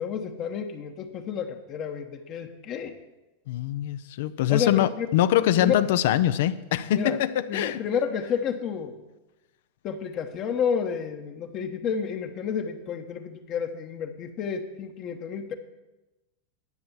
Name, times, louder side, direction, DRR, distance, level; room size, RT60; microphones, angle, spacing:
voice 1, 0.0-2.9 4.5-5.1 5.6-5.7 7.0-7.2 7.5-9.0 9.8-15.5, left 7 dB, 40° left, 4 dB, 1.0 m, -30 dB
voice 2, 3.5-7.8, left 12 dB, 70° left, 13 dB, 0.5 m, -24 dB
11.0 x 6.8 x 7.3 m, 1.1 s
hypercardioid pair, 120°, 0 cm